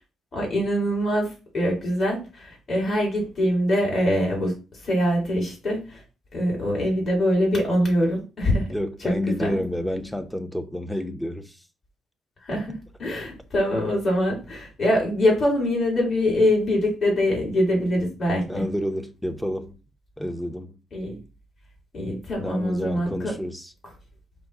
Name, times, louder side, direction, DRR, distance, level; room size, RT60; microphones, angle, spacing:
voice 1, 0.3-6.0 6.3-8.7 9.0-9.6 12.4-12.7 13.0-18.6 20.9-21.2 21.9-23.3, left 1 dB, 40° left, 2.2 m, -24 dB
voice 2, 8.7-11.6 18.5-19.8 20.2-20.7 22.4-23.7, left 1 dB, 5° left, 0.6 m, -29 dB
5.2 x 2.0 x 4.6 m
cardioid pair, 90°, 0 cm